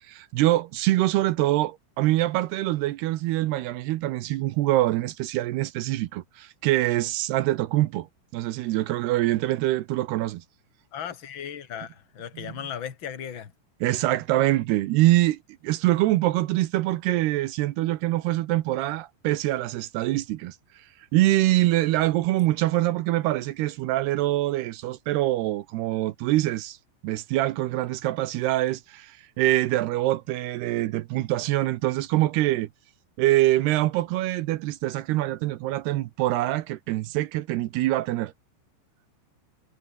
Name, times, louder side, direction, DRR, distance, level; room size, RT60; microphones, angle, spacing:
voice 1, 0.1-8.1 8.3-10.4 12.4-12.5 13.8-20.6 21.1-26.8 27.0-32.7 33.2-38.3, right 16 dB, 75° right, 2.4 m, -24 dB
voice 2, 10.9-13.5, left 8 dB, 50° left, 1.4 m, -36 dB
omnidirectional pair, 5.6 m